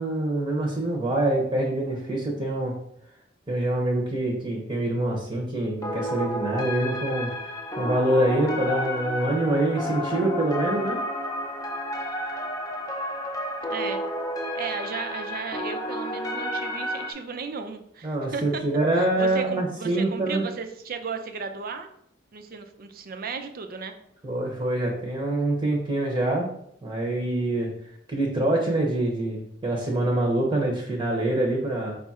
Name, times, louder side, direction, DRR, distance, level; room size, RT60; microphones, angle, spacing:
voice 1, 0.0-2.7 3.5-11.0 18.0-20.5 24.2-26.5 26.8-27.7 28.1-31.9, right 1 dB, 25° right, -1 dB, 0.8 m, -25 dB
sound 1, 5.8-17.1, equal, 20° left, 0.5 m, -31 dB
voice 2, 13.7-14.1 14.5-18.6 19.0-21.9 22.3-23.9, right 5 dB, 50° right, 7 dB, 0.5 m, -35 dB
5.1 x 2.4 x 4.1 m, 0.71 s
head